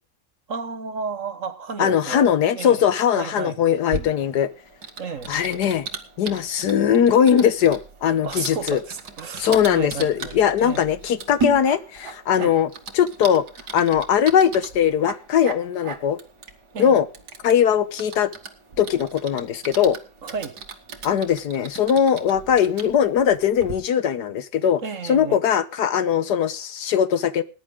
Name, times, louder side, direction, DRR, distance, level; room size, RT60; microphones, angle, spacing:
voice 1, 0.5-2.3 2.5-3.6 5.0-5.4 8.2-10.8 12.3-12.5 16.7-17.0 20.2-20.5 24.8-25.4, right 5 dB, 55° right, 10 dB, 1.6 m, -33 dB
voice 2, 1.8-4.5 5.3-5.9 6.2-8.8 9.4-12.7 12.9-13.4 13.7-16.2 16.8-17.1 17.4-18.3 18.8-20.0 21.0-24.8 25.1-27.4, left 8 dB, 80° left, 13 dB, 1.6 m, -20 dB
Typing, 3.9-23.7, right 4 dB, 80° right, 2.2 m, -37 dB
20.0 x 10.5 x 3.6 m, 0.34 s
omnidirectional pair, 1.7 m